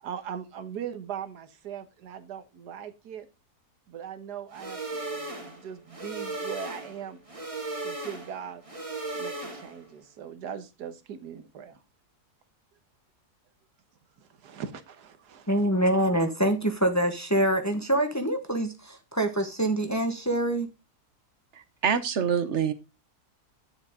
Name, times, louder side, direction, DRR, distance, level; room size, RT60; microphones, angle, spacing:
voice 1, 0.0-3.3 3.9-7.2 7.8-8.6 9.1-11.8 14.2-15.5, right 8 dB, 90° right, 1.7 m, -40 dB
sound 1, 4.5-9.9, right 2 dB, 20° right, 1.8 m, -36 dB
voice 2, 15.5-20.7, right 1 dB, 10° left, 1.1 m, -25 dB
voice 3, 21.8-22.7, right 7 dB, 50° right, 1.1 m, -25 dB
10.5 x 7.1 x 3.6 m
omnidirectional pair, 1.7 m